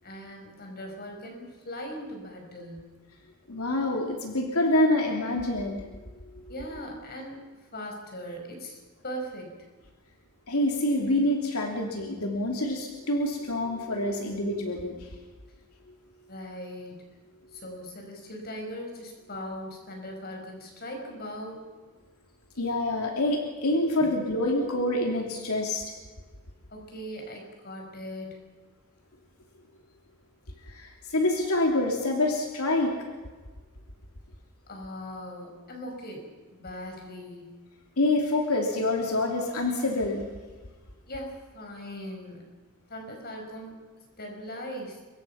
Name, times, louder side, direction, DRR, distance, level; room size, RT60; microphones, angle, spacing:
voice 1, 0.0-2.9 6.5-9.6 16.3-17.0 17.5-21.6 24.0-24.1 26.7-28.5 34.7-37.5 41.1-42.5 42.9-43.8 44.2-45.0, equal, 45° left, 2 dB, 5.8 m, -40 dB
voice 2, 3.5-5.8 6.2-6.5 10.5-15.1 22.6-25.9 30.7-33.1 38.0-40.3, left 1 dB, 85° left, 2 dB, 2.9 m, -26 dB
25.0 x 23.0 x 5.8 m, 1.4 s
head